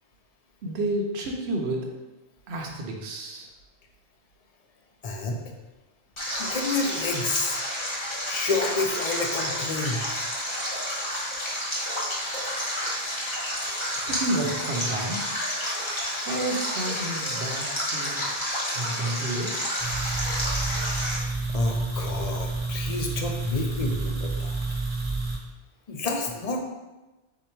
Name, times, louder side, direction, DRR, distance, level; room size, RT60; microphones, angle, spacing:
voice 1, 0.6-1.9 2.5-3.5 13.9-15.4 16.2-18.4 18.7-19.6, right 1 dB, 75° right, 0 dB, 1.0 m, -30 dB
voice 2, 5.0-5.4 6.4-7.6 8.3-10.0 21.5-24.6 25.9-26.6, left 3 dB, 45° left, 2 dB, 0.5 m, -29 dB
Stream, 6.2-21.2, equal, 30° left, 1.0 m, -30 dB
sound 1, 19.8-25.4, right 3 dB, 30° right, 0.9 m, -29 dB
3.9 x 2.9 x 4.4 m, 1.1 s
omnidirectional pair, 1.1 m